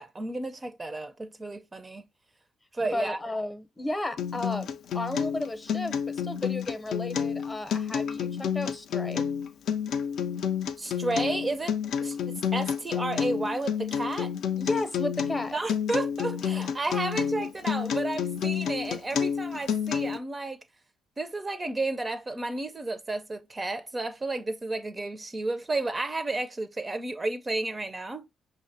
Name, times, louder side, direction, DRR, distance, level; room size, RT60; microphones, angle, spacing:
voice 1, 0.0-2.0 2.7-3.2 10.8-11.7 12.0-12.2 12.5-14.3 15.5-20.6 21.2-28.3, right 2 dB, 30° right, 0.4 m, -32 dB
voice 2, 2.8-9.3 14.6-15.6, left 2 dB, 20° left, 0.6 m, -33 dB
Acoustic guitar, 4.2-20.2, left 7 dB, 70° left, 0.4 m, -29 dB
5.4 x 2.1 x 2.6 m
supercardioid pair, 60°, 0 cm